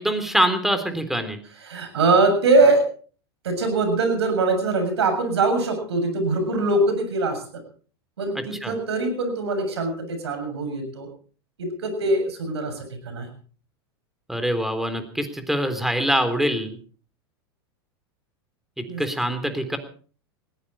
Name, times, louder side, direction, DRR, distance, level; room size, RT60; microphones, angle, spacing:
voice 1, 0.0-1.4 8.6-8.7 14.3-16.8 19.0-19.8, equal, ahead, 9 dB, 3.4 m, -24 dB
voice 2, 1.6-2.8 3.4-7.4 8.2-11.1 11.6-13.3 18.9-19.0, right 3 dB, 80° right, 7 dB, 7.2 m, -22 dB
20.0 x 16.0 x 4.3 m, 0.42 s
hypercardioid pair, 100°, 14 cm